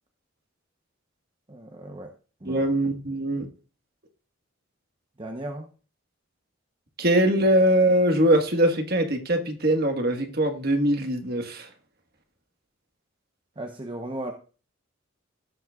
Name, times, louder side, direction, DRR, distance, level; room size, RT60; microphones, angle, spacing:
voice 1, 1.5-2.1 2.4-2.7 5.2-5.7 13.6-14.3, right 1 dB, 25° right, 2 dB, 0.9 m, -36 dB
voice 2, 2.4-3.5 7.0-11.7, right 1 dB, 50° right, 5 dB, 1.5 m, -22 dB
16.5 x 7.7 x 2.4 m, 0.36 s
head